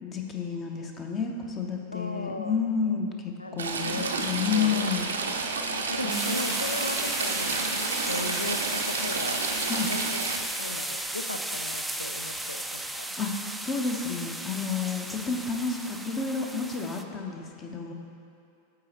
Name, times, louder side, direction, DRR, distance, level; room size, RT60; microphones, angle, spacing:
voice 1, 0.0-5.1 6.0-6.4 9.6-9.9 13.2-13.3 13.6-17.9, left 5 dB, 25° left, 2 dB, 0.7 m, -30 dB
voice 2, 1.9-2.5 3.4-4.3 4.5-4.9 5.9-7.7 8.1-9.5 9.9-13.1, left 2 dB, 80° left, 8 dB, 0.3 m, -37 dB
Stream / Trickle dribble, 3.6-10.4, right 4 dB, 70° right, 0.5 m, -30 dB
sound 1, 6.1-17.0, right 1 dB, 5° right, 0.3 m, -34 dB
8.7 x 3.9 x 4.3 m, 2.7 s
figure-of-eight pair, 90°, 0 cm